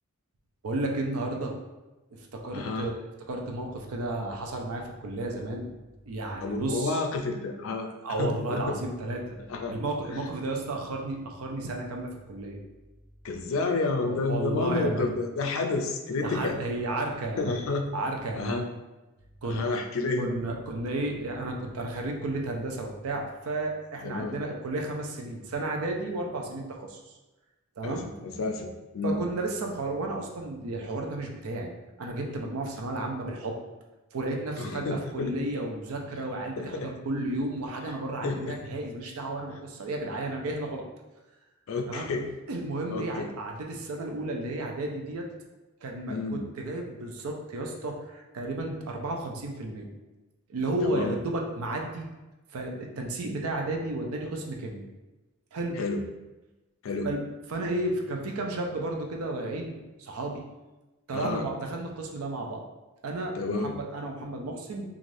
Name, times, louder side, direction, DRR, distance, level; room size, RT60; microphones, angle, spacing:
voice 1, 0.6-1.5 2.1-5.7 6.1-7.0 8.0-9.4 9.7-12.6 14.0-15.1 16.2-17.7 17.9-18.6 19.4-19.6 20.2-27.2 27.8-28.0 29.0-31.7 32.0-33.6 34.1-40.8 41.9-42.1 42.5-45.3 45.8-49.9 50.5-52.1 52.5-54.8 55.5-55.8 57.0-60.4 61.1-62.6 63.0-65.0, right 2 dB, 80° right, 2 dB, 0.5 m, -33 dB
voice 2, 2.5-2.9 6.4-7.9 8.2-8.7 9.4-9.7 13.2-16.6 17.4-17.9 18.4-18.7 19.4-20.3 24.0-24.4 27.8-28.7 28.9-29.2 34.6-35.3 36.1-36.2 36.6-36.9 38.2-38.6 41.7-42.3 42.9-43.3 46.1-46.4 50.8-51.1 55.8-56.0 56.8-57.1 61.1-61.5 63.3-63.8, left 3 dB, 70° left, 4 dB, 0.4 m, -30 dB
3.1 x 2.4 x 2.5 m, 1.1 s
head